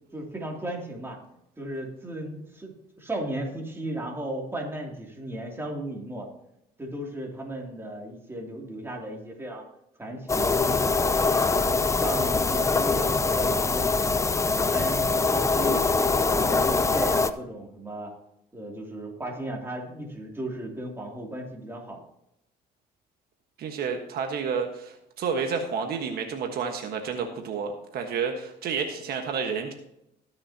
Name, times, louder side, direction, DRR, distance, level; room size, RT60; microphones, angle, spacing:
voice 1, 0.1-1.2 1.6-6.3 6.8-9.6 10.0-11.0 11.5-15.0 15.3-15.8 16.2-18.1 18.5-22.0, right 1 dB, 15° right, 0 dB, 2.8 m, -35 dB
sound 1, 10.3-17.3, left 3 dB, 15° left, 0.5 m, -23 dB
voice 2, 23.6-29.7, right 6 dB, 65° right, 4 dB, 1.4 m, -30 dB
20.0 x 6.8 x 2.9 m, 0.80 s
cardioid pair, 110°, 17 cm